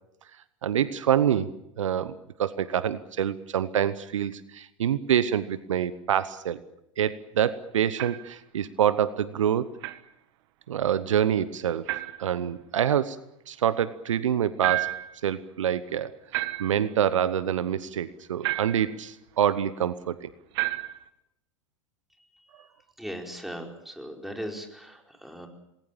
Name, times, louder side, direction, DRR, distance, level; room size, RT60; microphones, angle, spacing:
voice 1, 0.6-1.5 1.8-6.6 7.0-9.7 10.7-11.9 12.2-13.2 13.5-14.9 15.2-16.2 16.6-20.3, right 9 dB, 70° right, 16 dB, 1.0 m, -26 dB
sound 1, 8.0-8.3 9.8-10.0 11.9-12.3 14.6-15.2 16.3-16.9 18.4-19.0 20.5-21.1, right 18 dB, 55° right, 1.6 m, -31 dB
voice 2, 23.0-25.5, equal, ahead, 2 dB, 4.7 m, -38 dB
27.5 x 20.0 x 7.3 m, 0.81 s
figure-of-eight pair, 90°, 16 cm